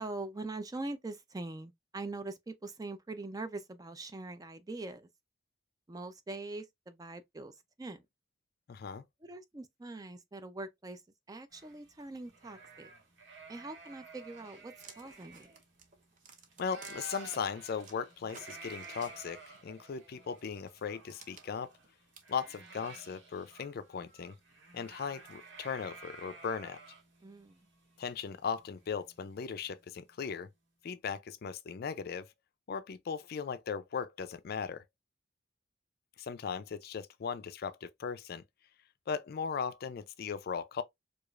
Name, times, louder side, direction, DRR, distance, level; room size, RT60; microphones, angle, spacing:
voice 1, 0.0-5.1 5.9-8.0 9.2-11.0 11.3-12.9 13.5-15.5 27.2-27.7, right 2 dB, 20° right, 0.4 m, -43 dB
voice 2, 8.7-9.0 16.6-21.7 22.3-24.4 24.7-26.8 28.0-30.5 30.8-32.3 32.7-34.8 36.2-38.4 39.1-40.8, left 6 dB, 50° left, 0.4 m, -38 dB
sound 1, 11.5-16.2 16.5-29.4, right 4 dB, 65° right, 1.5 m, -52 dB
sound 2, 14.8-17.4 17.8-19.6 20.4-23.0, right 5 dB, 40° right, 0.8 m, -55 dB
4.8 x 2.4 x 2.4 m
head